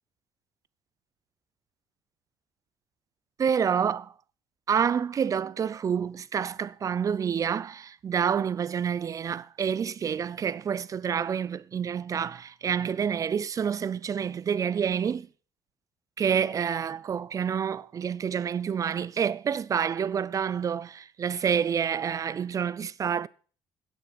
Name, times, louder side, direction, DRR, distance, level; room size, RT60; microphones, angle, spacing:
voice 1, 3.4-4.1 4.7-15.3 16.2-23.3, right 7 dB, 35° right, 0.5 m, -28 dB
16.5 x 6.4 x 6.5 m
cardioid pair, 120°, 10 cm